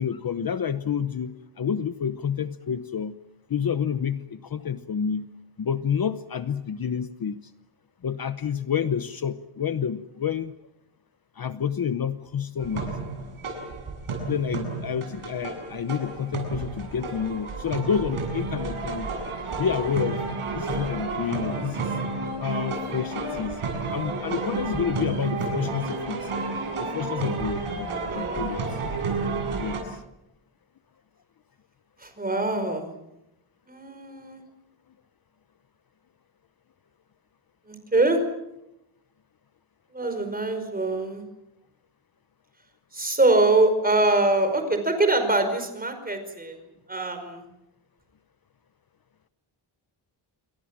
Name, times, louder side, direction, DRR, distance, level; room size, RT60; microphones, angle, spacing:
voice 1, 0.0-3.1 3.5-5.3 5.6-7.4 8.0-10.5 11.4-13.0 14.2-19.1 19.6-20.2 20.5-21.9 22.4-23.6 23.9-26.3 26.9-28.6 29.5-30.0, left 7 dB, 45° left, 11 dB, 0.9 m, -29 dB
sound 1, 12.6-29.8, right 3 dB, 80° right, 7.7 m, -31 dB
voice 2, 28.1-28.4 32.0-32.9 33.7-34.4 37.7-38.2 39.9-41.2 42.9-46.6 46.9-47.4, right 2 dB, 20° right, 7 dB, 5.0 m, -24 dB
28.5 x 23.0 x 7.5 m, 0.87 s
wide cardioid pair, 175°, 49 cm